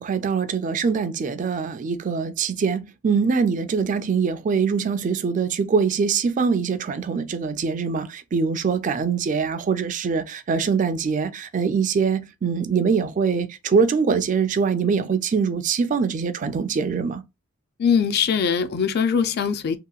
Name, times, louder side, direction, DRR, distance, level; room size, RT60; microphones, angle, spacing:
voice 1, 0.0-17.2, right 5 dB, 40° right, 0.4 m, -23 dB
voice 2, 17.8-19.8, left 6 dB, 50° left, 0.4 m, -21 dB
2.9 x 2.8 x 2.3 m
head